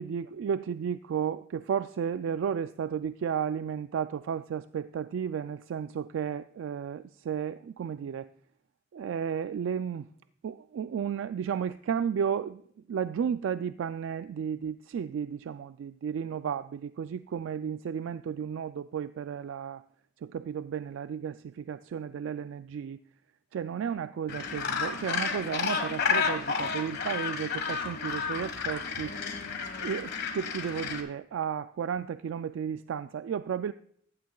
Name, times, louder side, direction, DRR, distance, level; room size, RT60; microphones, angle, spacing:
voice 1, 0.0-8.3 8.9-10.1 10.4-12.6 12.9-19.8 20.2-23.0 23.5-29.2 29.8-33.7, right 7 dB, 75° right, 0.3 m, -33 dB
Gull seagull, 24.3-31.0, left 5 dB, 60° left, 1.5 m, -31 dB
15.0 x 12.0 x 2.3 m
head